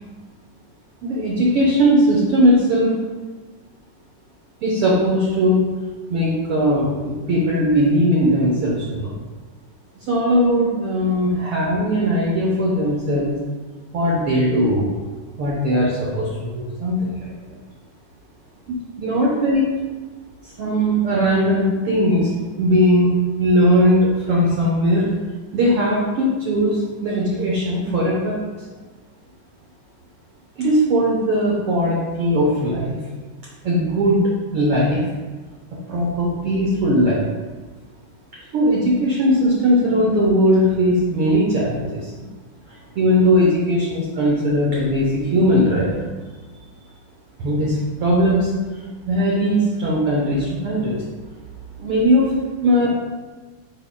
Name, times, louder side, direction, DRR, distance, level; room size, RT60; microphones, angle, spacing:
voice 1, 1.0-2.9 4.6-5.7 6.1-9.2 10.1-13.3 13.9-14.9 15.4-17.3 19.0-19.7 20.4-25.1 25.5-28.4 30.6-33.0 33.6-35.1 35.9-37.3 38.5-42.3 42.9-46.1 47.4-48.5 49.0-51.0 51.8-52.3 52.6-52.9, equal, 70° right, -4 dB, 1.3 m, -19 dB
10.0 x 4.7 x 2.2 m, 1.3 s
omnidirectional pair, 3.7 m